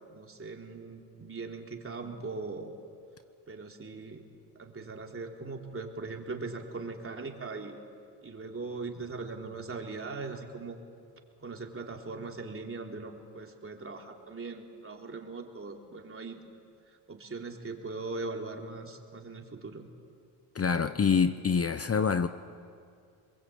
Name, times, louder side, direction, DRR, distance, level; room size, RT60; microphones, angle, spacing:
voice 1, 0.1-2.7 3.5-4.2 4.6-7.8 8.2-10.8 11.4-16.4 16.9-19.9, right 3 dB, 30° right, 1 dB, 3.6 m, -40 dB
voice 2, 20.5-22.3, left 6 dB, 30° left, 11 dB, 0.9 m, -26 dB
26.5 x 22.0 x 8.7 m, 2.3 s
cardioid pair, 80°, 45 cm